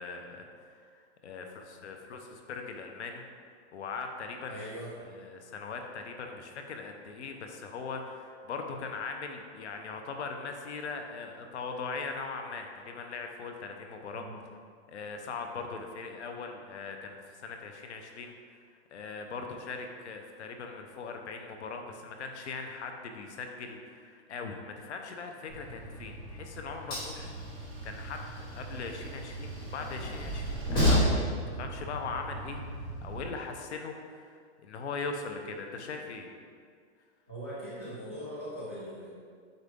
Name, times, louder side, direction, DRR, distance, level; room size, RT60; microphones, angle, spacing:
voice 1, 0.0-3.2 3.7-4.7 5.0-14.3 14.9-18.6 18.9-27.3 27.8-34.3 34.6-36.3, left 4 dB, 70° left, 4 dB, 0.9 m, -40 dB
voice 2, 4.4-4.9 14.1-14.4 37.3-39.1, equal, 15° right, -9 dB, 0.3 m, -40 dB
Train, 25.5-33.2, equal, 15° left, 1.2 m, -33 dB
8.1 x 4.1 x 3.6 m, 2.1 s
hypercardioid pair, 180°, 35 cm